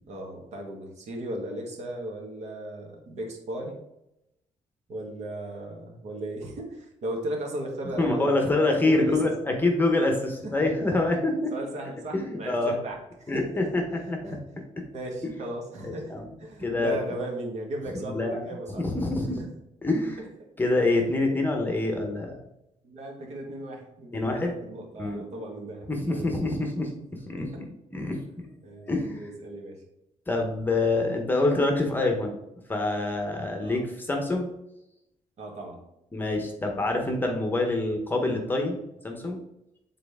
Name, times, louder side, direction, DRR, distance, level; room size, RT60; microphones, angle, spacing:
voice 1, 0.1-3.8 4.9-9.2 10.6-10.7 11.5-13.7 14.2-14.4 14.9-18.9 20.2-20.5 20.9-21.4 22.8-26.3 27.3-27.6 28.6-28.9 29.2-29.8 33.6-33.8 35.4-35.8, right 1 dB, 60° right, 1 dB, 1.5 m, -36 dB
voice 2, 8.0-11.5 12.1-12.7 13.3-13.8 14.1-14.4 15.2-15.3 15.8-16.2 16.6-17.0 17.9-18.5 18.8-19.4 19.8-20.2 20.6-22.3 24.1-24.5 25.0-25.2 25.9-27.7 27.9-28.5 28.8-29.2 30.3-32.4 32.7-34.5 36.1-39.4, left 2 dB, 15° left, 3 dB, 0.8 m, -26 dB
7.4 x 4.0 x 3.5 m, 0.85 s
cardioid pair, 170°, 13 cm